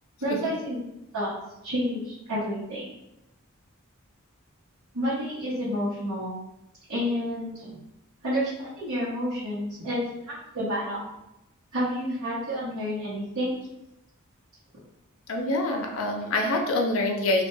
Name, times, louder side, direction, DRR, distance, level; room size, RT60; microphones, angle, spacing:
voice 1, 0.2-0.8 1.1-1.3 1.6-2.9 4.9-6.3 6.9-7.7 8.2-11.1 11.7-13.5, equal, 75° right, -11 dB, 0.9 m, -29 dB
voice 2, 15.3-17.5, left 2 dB, 65° left, 1 dB, 0.4 m, -25 dB
2.3 x 2.1 x 3.0 m, 0.89 s
head